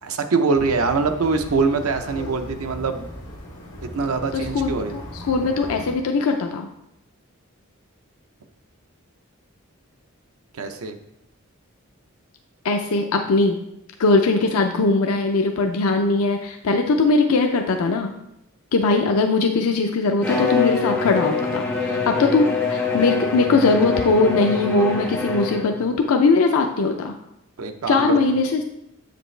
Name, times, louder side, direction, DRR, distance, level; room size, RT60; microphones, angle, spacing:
voice 1, 0.0-3.1 3.8-5.0 10.5-11.0 27.6-28.2, right 4 dB, 90° right, 7 dB, 0.6 m, -23 dB
sound 1, 0.5-5.9, equal, 65° left, 1.9 m, -37 dB
voice 2, 4.3-6.7 12.6-13.6 14.0-18.1 18.7-27.1 27.9-28.6, left 3 dB, 85° left, 4 dB, 0.5 m, -20 dB
Bowed string instrument, 20.2-25.9, left 4 dB, 5° left, 1.3 m, -24 dB
7.7 x 5.1 x 3.2 m, 0.83 s
head